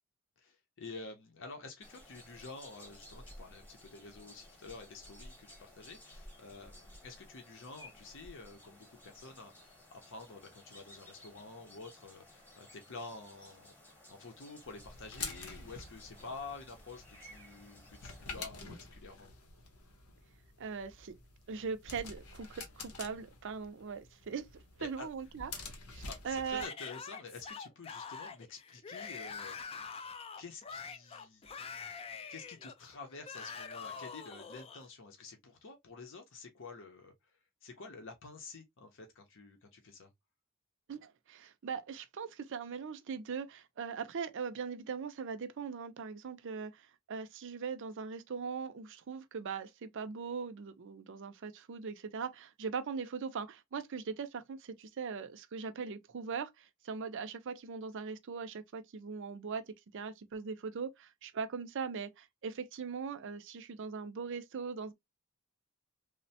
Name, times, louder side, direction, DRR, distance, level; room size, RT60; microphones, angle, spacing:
voice 1, 0.4-13.7 14.1-19.3 24.8-25.1 26.1-29.6 30.4-31.6 32.3-37.3 37.6-40.1, left 3 dB, 60° left, 0.6 m, -49 dB
sound 1, 1.8-18.5, left 1 dB, 10° left, 1.0 m, -56 dB
sound 2, 14.6-26.7, left 4 dB, 90° left, 0.8 m, -48 dB
voice 2, 20.6-21.1 21.5-26.7 40.9-64.9, right 5 dB, 55° right, 0.5 m, -40 dB
Yell / Screaming, 26.5-34.8, left 5 dB, 25° left, 0.3 m, -45 dB
3.2 x 2.1 x 2.6 m
head